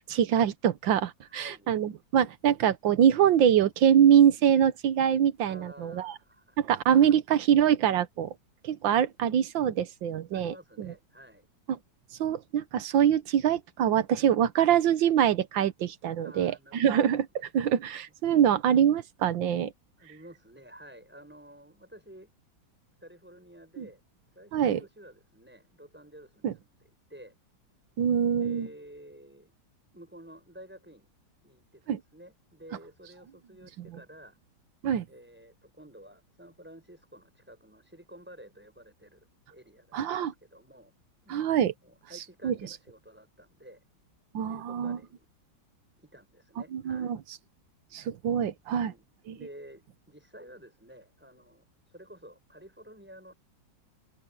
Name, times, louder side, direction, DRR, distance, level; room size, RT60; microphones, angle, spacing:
voice 1, 0.0-6.1 6.6-8.3 8.6-10.9 12.2-17.3 17.5-19.7 23.8-23.9 24.5-24.8 26.4-26.5 28.0-28.7 31.9-32.0 33.8-33.9 34.8-35.1 39.9-40.3 41.3-41.7 42.1-42.5 44.3-45.0 46.7-47.2 47.9-48.9 49.3-49.4, right 9 dB, 80° right, 1.7 m, -24 dB
voice 2, 1.2-1.7 5.5-6.6 10.3-11.5 16.2-16.9 17.4-17.5 17.8-17.9 20.0-22.3 23.0-24.0 24.3-26.5 27.1-27.4 28.3-29.5 29.9-31.1 31.4-34.4 35.1-40.9 41.2-43.8 44.5-45.3 46.0-47.1 48.8-49.0 49.4-53.3, right 1 dB, 5° right, 6.7 m, -51 dB
open air
omnidirectional pair, 2.1 m